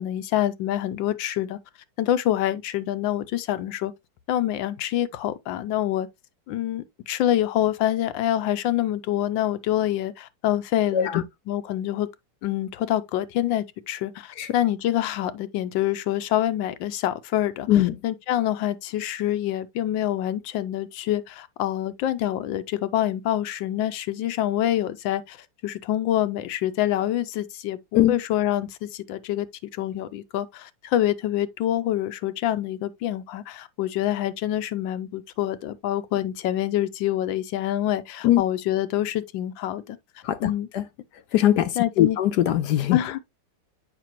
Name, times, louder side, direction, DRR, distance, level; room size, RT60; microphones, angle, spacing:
voice 1, 0.0-1.6 2.0-3.9 4.3-6.1 6.5-12.1 12.4-17.7 18.0-29.5 29.7-40.0 40.4-40.7 41.8-42.2 42.9-43.2, left 12 dB, 85° left, 1.4 m, -26 dB
voice 2, 10.9-11.2 14.4-14.5 17.7-17.9 27.9-28.1 38.2-38.4 40.2-40.8 41.3-43.0, left 12 dB, 70° left, 1.0 m, -21 dB
7.5 x 5.2 x 2.9 m
omnidirectional pair, 2.0 m